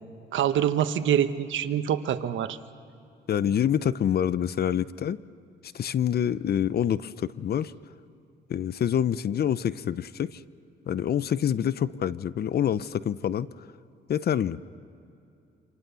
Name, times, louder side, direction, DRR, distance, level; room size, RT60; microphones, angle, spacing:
voice 1, 0.3-2.6, right 9 dB, 75° right, 11 dB, 1.2 m, -25 dB
voice 2, 3.3-5.2 5.6-7.7 8.5-10.4 10.9-13.5 14.1-14.6, left 9 dB, 55° left, 17 dB, 0.7 m, -26 dB
27.5 x 26.5 x 7.0 m, 2.7 s
cardioid pair, 90°, 20 cm